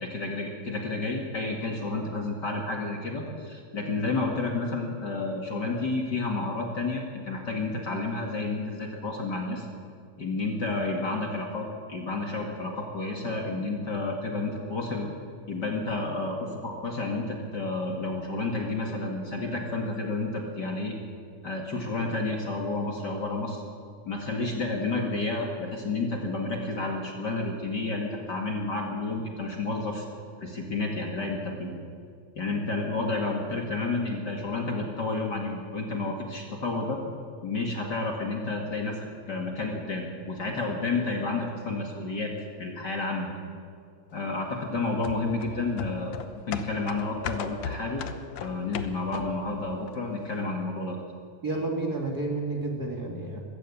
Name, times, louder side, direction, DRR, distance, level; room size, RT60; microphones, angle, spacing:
voice 1, 0.0-9.7 10.2-15.1 15.5-20.9 21.4-23.6 24.1-30.0 30.4-31.8 32.4-37.0 37.4-39.0 39.3-42.3 42.6-43.4 44.1-46.2 46.5-48.0 48.4-51.0, left 3 dB, 35° left, 1 dB, 2.4 m, -30 dB
sound 1, 45.0-49.5 49.9-50.0, left 7 dB, 70° left, 2.1 m, -37 dB
voice 2, 51.4-53.4, right 2 dB, 35° right, 2 dB, 2.1 m, -30 dB
22.0 x 15.5 x 8.5 m, 2.2 s
omnidirectional pair, 3.5 m